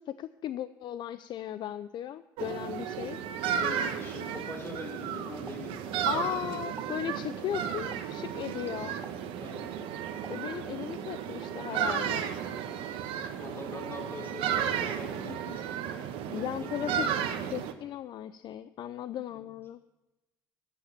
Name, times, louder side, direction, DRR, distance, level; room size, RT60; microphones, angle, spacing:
voice 1, 0.0-3.2 6.1-8.9 10.3-12.3 16.3-17.1 17.5-19.8, left 11 dB, 50° left, 14 dB, 0.4 m, -36 dB
sound 1, 2.4-17.7, right 8 dB, 70° right, 1.0 m, -34 dB
voice 2, 3.5-6.0 9.4-9.8 13.4-15.7 16.3-17.5 19.3-19.4, left 2 dB, 25° left, 2 dB, 3.8 m, -43 dB
Explosion, 5.5-6.3 6.6-7.1 7.9-8.3 9.0-9.4 10.2-10.9 11.4-11.7, right 3 dB, 15° right, 1.1 m, -51 dB
10.5 x 8.3 x 7.3 m, 1.0 s
supercardioid pair, 75°, 10 cm